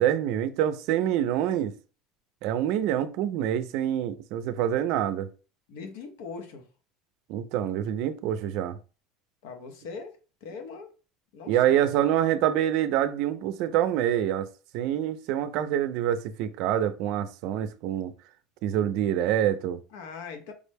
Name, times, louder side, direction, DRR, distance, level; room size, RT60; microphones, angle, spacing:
voice 1, 0.0-1.7 2.4-5.3 7.3-8.8 11.5-14.5 14.7-18.1 18.6-19.8, right 11 dB, 65° right, 0.4 m, -26 dB
voice 2, 5.7-6.7 9.4-10.9 11.3-12.1 19.9-20.5, left 5 dB, 90° left, 0.8 m, -41 dB
4.9 x 2.1 x 3.3 m
cardioid pair, 150°, 0 cm